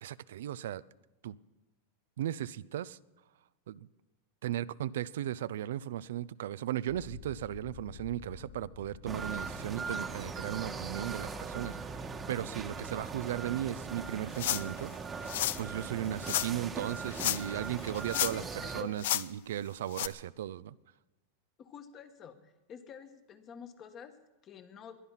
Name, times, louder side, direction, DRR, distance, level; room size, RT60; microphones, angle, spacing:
voice 1, 0.0-0.8 1.2-1.4 2.2-3.0 3.7-3.9 4.4-20.8, right 12 dB, 80° right, 17 dB, 0.5 m, -36 dB
sound 1, 6.9-20.5, left 7 dB, 60° left, 3.8 m, -54 dB
sound 2, 9.1-18.8, right 5 dB, 20° right, 1.3 m, -40 dB
sound 3, 14.4-14.8 15.3-15.6 16.2-16.5 17.1-17.6 17.9-18.5 19.0-19.2 19.9-20.1, left 13 dB, 75° left, 0.6 m, -31 dB
voice 2, 18.1-19.1 21.6-25.0, left 7 dB, 30° left, 8 dB, 1.6 m, -49 dB
21.0 x 11.0 x 5.8 m, 1.1 s
supercardioid pair, 135°, 0 cm